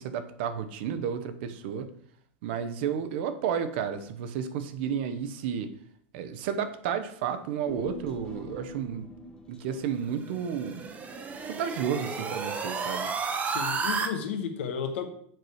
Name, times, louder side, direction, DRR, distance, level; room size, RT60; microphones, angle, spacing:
voice 1, 0.0-1.9 2.4-5.7 6.1-9.1 9.5-10.9 11.5-13.1, right 8 dB, 65° right, 10 dB, 0.9 m, -32 dB
Human voice, 7.7-12.3 12.6-12.7, left 2 dB, 10° left, 1.0 m, -45 dB
sound 1, 10.1-14.1, right 5 dB, 25° right, 0.9 m, -32 dB
voice 2, 13.4-15.1, left 7 dB, 80° left, 6 dB, 1.3 m, -33 dB
7.6 x 4.8 x 4.8 m, 0.62 s
supercardioid pair, 140°, 6 cm